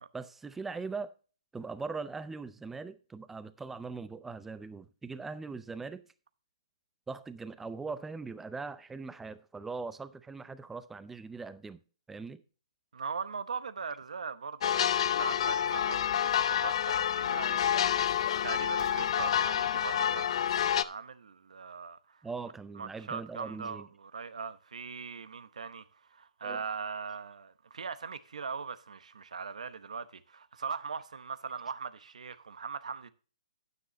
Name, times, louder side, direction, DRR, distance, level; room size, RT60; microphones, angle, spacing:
voice 1, 0.1-1.2 1.5-6.1 7.1-11.8 12.1-12.4 22.2-23.9 26.4-26.6, right 4 dB, 5° right, 0.5 m, -41 dB
voice 2, 12.9-17.9 18.4-22.2 22.8-33.1, right 5 dB, 80° right, 0.8 m, -40 dB
sound 1, 14.6-20.8, left 9 dB, 55° left, 0.5 m, -28 dB
9.7 x 9.5 x 3.1 m
hypercardioid pair, 155°, 4 cm